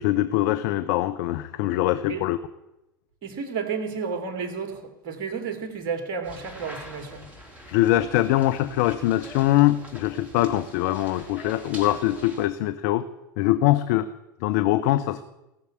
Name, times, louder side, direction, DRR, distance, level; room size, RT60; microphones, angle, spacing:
voice 1, 0.0-2.4 7.7-13.0 13.4-14.1 14.4-15.2, left 14 dB, 50° left, 10 dB, 0.7 m, -23 dB
voice 2, 3.2-7.3, right 5 dB, 45° right, 7 dB, 2.7 m, -32 dB
sound 1, 6.2-12.5, equal, 10° right, 3.8 m, -44 dB
17.5 x 7.1 x 9.9 m, 0.96 s
figure-of-eight pair, 80°, 11 cm